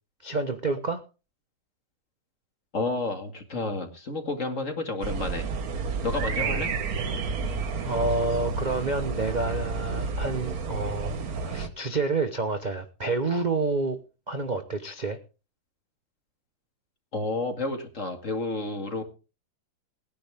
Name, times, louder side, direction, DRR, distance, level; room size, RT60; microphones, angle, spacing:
voice 1, 0.2-1.0 6.4-6.6 7.8-14.0 14.3-15.2, right 3 dB, 35° right, 7 dB, 0.8 m, -29 dB
voice 2, 2.7-5.4 6.0-6.7 17.1-19.0, left 3 dB, 40° left, 5 dB, 2.5 m, -30 dB
sound 1, 5.0-11.7, right 4 dB, 55° right, 1.6 m, -30 dB
19.5 x 10.0 x 3.6 m, 0.33 s
omnidirectional pair, 2.1 m